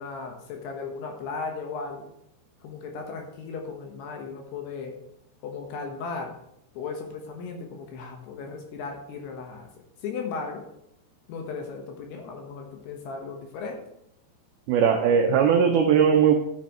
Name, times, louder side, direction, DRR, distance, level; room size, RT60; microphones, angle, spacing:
voice 1, 0.0-2.1 2.6-4.9 5.4-6.3 6.7-9.7 10.0-10.6 11.3-13.8, left 4 dB, 70° left, 2 dB, 3.0 m, -36 dB
voice 2, 14.7-16.4, right 7 dB, 85° right, 4 dB, 2.2 m, -19 dB
12.5 x 8.5 x 3.1 m, 0.77 s
omnidirectional pair, 5.3 m